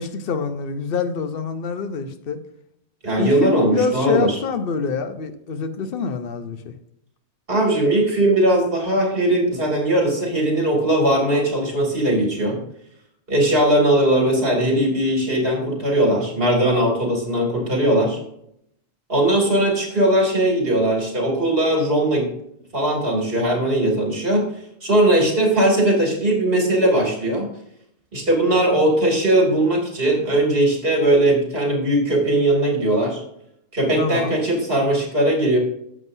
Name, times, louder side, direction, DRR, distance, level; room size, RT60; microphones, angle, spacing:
voice 1, 0.0-2.4 3.2-6.7 34.0-34.4, left 5 dB, 65° left, 9 dB, 1.0 m, -25 dB
voice 2, 3.0-4.3 7.5-12.6 13.3-18.2 19.1-22.3 22.7-24.4 24.8-27.5 28.1-33.2 33.7-35.6, right 1 dB, 65° right, 0 dB, 3.1 m, -19 dB
11.0 x 7.6 x 2.7 m, 0.74 s
omnidirectional pair, 1.1 m